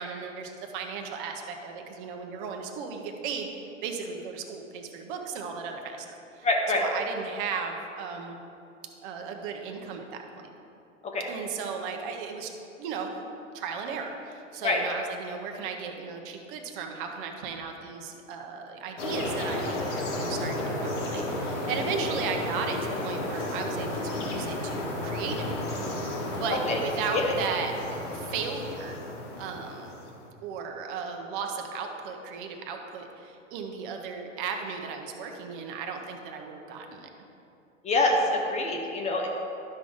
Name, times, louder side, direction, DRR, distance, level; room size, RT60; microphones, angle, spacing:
voice 1, 0.0-3.5 3.8-6.1 6.3-8.4 9.0-10.5 11.3-12.5 12.8-13.1 13.5-25.7 26.1-27.8 28.1-29.0 29.4-30.0 30.4-37.1, right 5 dB, 40° right, 3 dB, 1.0 m, -36 dB
voice 2, 6.4-6.8 11.1-11.2 14.6-14.8 26.7-26.8 27.1-27.4 37.8-39.3, left 2 dB, 15° left, 1 dB, 0.7 m, -25 dB
sound 1, 19.0-30.3, left 1 dB, 60° left, 1.9 m, -32 dB
11.5 x 6.1 x 3.6 m, 2.6 s
figure-of-eight pair, 95°, 39 cm